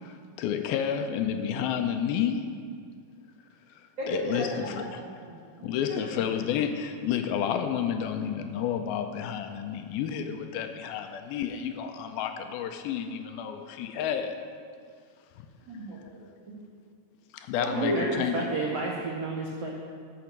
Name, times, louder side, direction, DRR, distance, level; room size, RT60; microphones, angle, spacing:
voice 1, 0.0-2.5 4.1-5.0 5.6-14.4 15.4-15.5 17.3-18.4, left 8 dB, 80° left, 6 dB, 2.4 m, -30 dB
voice 2, 4.0-6.2 15.7-16.5 17.6-18.0, equal, 40° right, -5 dB, 1.9 m, -35 dB
voice 3, 17.7-19.7, right 3 dB, 80° right, -1 dB, 1.4 m, -30 dB
13.0 x 6.9 x 6.0 m, 2.2 s
omnidirectional pair, 4.4 m